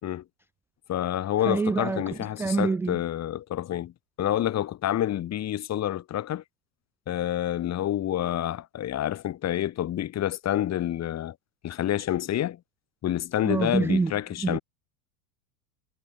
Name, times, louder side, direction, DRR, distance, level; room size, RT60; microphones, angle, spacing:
voice 1, 0.9-3.9 4.2-6.4 7.1-11.3 11.6-12.6 13.0-14.6, left 12 dB, 35° left, 5.0 m, -28 dB
voice 2, 1.5-3.0 13.4-14.1 14.4-14.6, right 4 dB, 5° right, 0.3 m, -26 dB
supercardioid pair, 120°, 44 cm